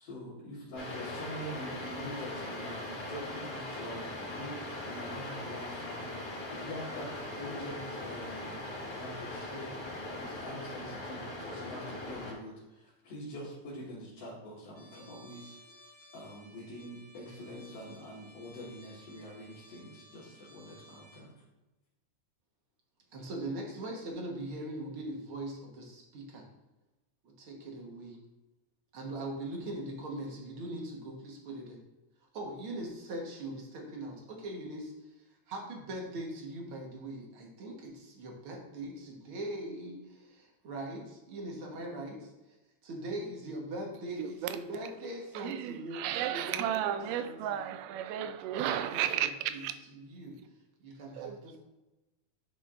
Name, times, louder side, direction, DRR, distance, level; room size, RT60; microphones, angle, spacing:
voice 1, 0.0-21.3, equal, 55° left, 2.4 m, -45 dB
sound 1, 0.7-12.3, left 1 dB, 35° left, 2.5 m, -40 dB
Trumpet, 14.7-21.3, equal, 15° left, 0.4 m, -57 dB
voice 2, 23.1-26.5 27.2-28.2 28.9-31.8 32.3-42.6 42.8-47.7 48.7-50.4 50.8-51.6, right 1 dB, 55° right, 1.7 m, -41 dB
voice 3, 44.2-44.6 45.4-49.7 51.2-51.6, right 11 dB, 90° right, 2.1 m, -33 dB
10.0 x 5.9 x 2.5 m
omnidirectional pair, 3.6 m